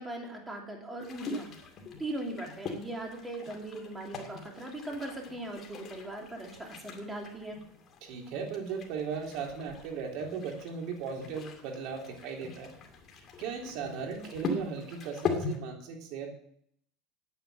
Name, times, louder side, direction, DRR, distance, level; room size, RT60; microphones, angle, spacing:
voice 1, 0.0-1.5 2.0-7.6, right 1 dB, 10° right, 0 dB, 2.9 m, -39 dB
sound 1, 1.0-15.6, left 4 dB, 30° left, 2.4 m, -41 dB
voice 2, 8.0-12.7 13.4-16.3, right 6 dB, 60° right, 2 dB, 3.4 m, -37 dB
9.6 x 9.3 x 7.7 m, 0.66 s
supercardioid pair, 145°, 0 cm